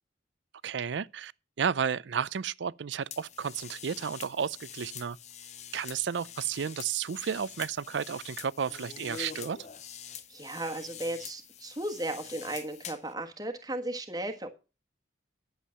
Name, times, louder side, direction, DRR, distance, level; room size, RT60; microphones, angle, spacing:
voice 1, 0.6-1.3 1.6-5.2 5.7-9.6, right 7 dB, 80° right, 0.5 m, -32 dB
sound 1, 3.1-13.1, left 8 dB, 40° left, 0.7 m, -45 dB
voice 2, 10.3-14.5, right 1 dB, 20° right, 1.4 m, -35 dB
11.5 x 7.3 x 5.7 m
head